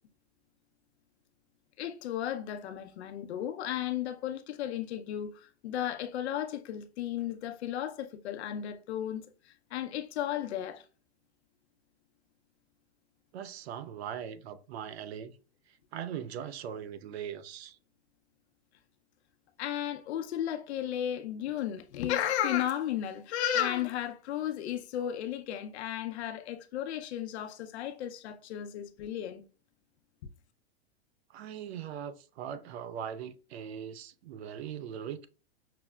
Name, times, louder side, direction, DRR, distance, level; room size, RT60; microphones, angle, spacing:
voice 1, 1.8-10.8 19.6-29.4, left 10 dB, 75° left, 0.6 m, -34 dB
voice 2, 13.3-15.4 15.9-17.8 31.3-35.3, right 9 dB, 70° right, 0.5 m, -40 dB
5.8 x 2.0 x 2.2 m
supercardioid pair, 155°, 33 cm